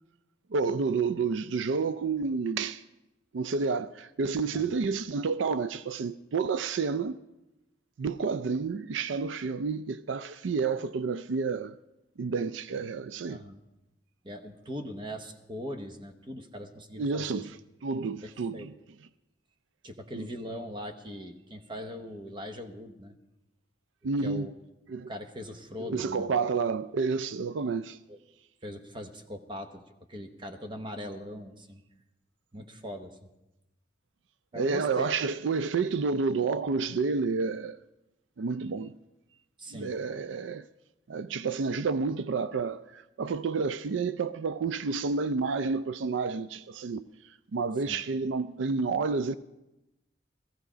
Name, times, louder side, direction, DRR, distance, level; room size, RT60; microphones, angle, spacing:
voice 1, 0.5-2.8 3.3-7.2 8.0-11.8 12.2-13.4 17.0-17.5 17.8-18.7 20.1-20.3 24.0-24.5 24.9-25.1 25.8-28.0 34.6-37.8 38.4-38.9 39.7-40.7 41.1-47.0 47.5-49.3, right 4 dB, 85° right, 0.4 m, -30 dB
voice 2, 13.3-13.6 14.2-17.4 18.2-18.7 19.8-23.2 24.2-24.5 25.1-26.4 28.1-28.2 28.6-29.8 30.1-31.8 32.5-33.3 34.5-35.1 39.6-40.0 47.9-48.0, equal, 25° right, 0.9 m, -40 dB
15.5 x 15.0 x 5.0 m
head